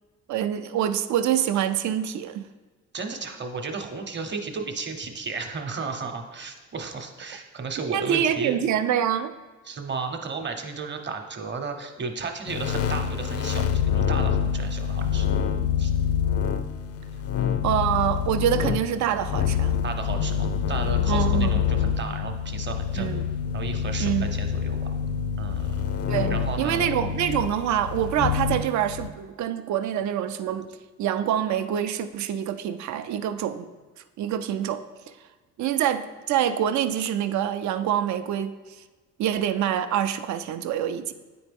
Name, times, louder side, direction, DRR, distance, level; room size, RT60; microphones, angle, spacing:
voice 1, 0.3-2.5 7.9-9.3 17.6-19.8 21.1-21.6 23.0-23.2 24.0-24.3 26.1-30.7 31.0-33.7 34.2-34.8 35.6-38.5 39.2-41.1, right 10 dB, 70° right, 11 dB, 0.5 m, -25 dB
voice 2, 2.9-8.6 9.7-15.3 15.8-15.9 19.8-23.1 23.5-24.8 25.4-25.8 26.3-26.9, right 4 dB, 35° right, 5 dB, 0.9 m, -34 dB
sound 1, 12.5-29.1, left 8 dB, 55° left, 0.5 m, -26 dB
9.2 x 4.3 x 3.5 m, 1.3 s
cardioid pair, 90°, 30 cm